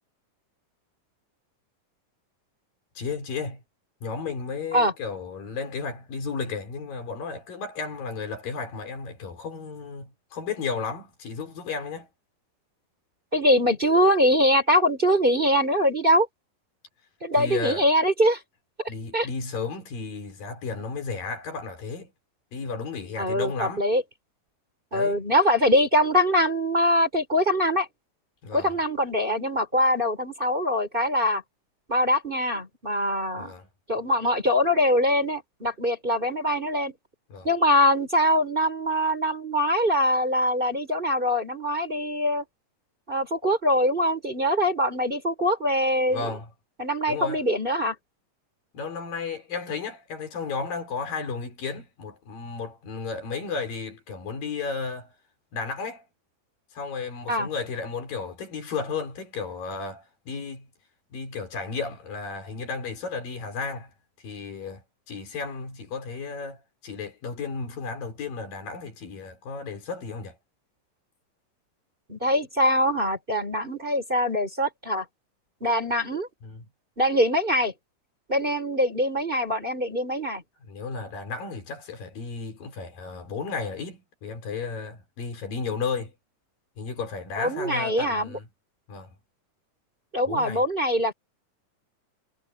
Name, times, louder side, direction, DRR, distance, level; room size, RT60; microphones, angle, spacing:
voice 1, 3.0-3.6 4.0-12.1 17.4-17.8 18.9-22.1 22.5-23.9 24.9-25.2 28.4-28.7 33.4-33.7 37.3-37.5 46.1-46.5 47.1-47.4 48.7-55.1 55.5-56.1 56.7-60.7 61.1-63.9 64.2-70.4 76.4-76.6 80.6-86.1 86.8-88.5 88.9-89.1 90.3-90.6, left 4 dB, 80° left, 6.0 m, -33 dB
voice 2, 13.3-16.3 17.2-18.4 19.1-19.3 23.2-24.0 24.9-27.9 28.5-31.4 31.9-33.5 33.9-36.9 37.4-42.4 43.1-46.3 46.8-47.9 57.3-57.5 72.1-75.0 75.6-76.3 77.0-77.7 78.3-80.4 87.4-88.4 90.1-91.1, equal, 15° right, 3.7 m, -23 dB
omnidirectional pair, 4.0 m